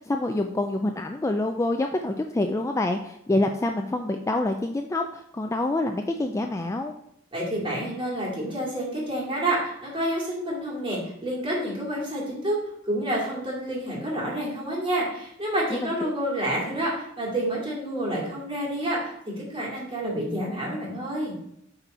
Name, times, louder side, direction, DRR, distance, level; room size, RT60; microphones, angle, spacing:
voice 1, 0.0-6.9 15.7-15.9, left 2 dB, 15° left, 4 dB, 0.3 m, -26 dB
voice 2, 7.3-21.3, right 1 dB, 25° right, -5 dB, 2.4 m, -29 dB
8.0 x 4.2 x 4.2 m, 0.74 s
head